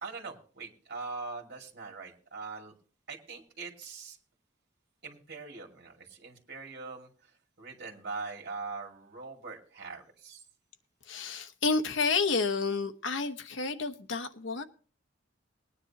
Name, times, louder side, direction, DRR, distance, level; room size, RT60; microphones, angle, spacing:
voice 1, 0.0-2.7 3.1-4.2 5.0-7.3 7.6-10.4, right 4 dB, 60° right, 2.6 m, -42 dB
voice 2, 11.1-14.6, left 4 dB, 90° left, 1.0 m, -30 dB
20.0 x 9.9 x 2.9 m
head